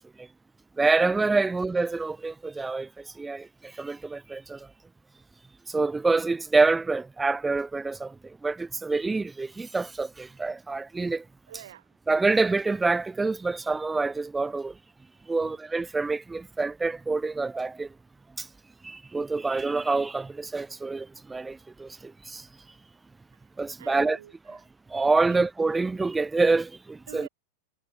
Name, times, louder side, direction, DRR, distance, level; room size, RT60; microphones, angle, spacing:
voice 1, 0.8-2.9 3.2-3.5 3.8-4.6 5.7-8.1 8.4-11.2 12.1-14.7 15.3-17.9 18.4-18.5 18.8-22.4 23.6-24.2 24.5-24.6 24.9-27.3, right 3 dB, 10° right, 0.4 m, -26 dB
voice 2, 11.5-11.9 15.3-15.6 23.8-24.6 25.2-25.4 27.1-27.3, right 11 dB, 60° right, 2.5 m, -46 dB
figure-of-eight pair, 90°, 0 cm